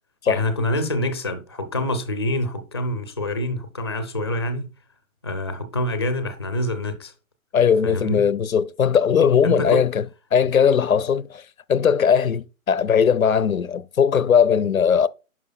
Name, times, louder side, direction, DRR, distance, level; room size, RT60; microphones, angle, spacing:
voice 1, 0.3-4.7 5.2-7.1 7.8-8.2 9.4-9.9, left 1 dB, 20° left, 0.4 m, -26 dB
voice 2, 7.5-10.0 10.3-11.4 11.7-15.1, left 7 dB, 75° left, 0.7 m, -19 dB
11.0 x 4.7 x 2.2 m
figure-of-eight pair, 140°, 41 cm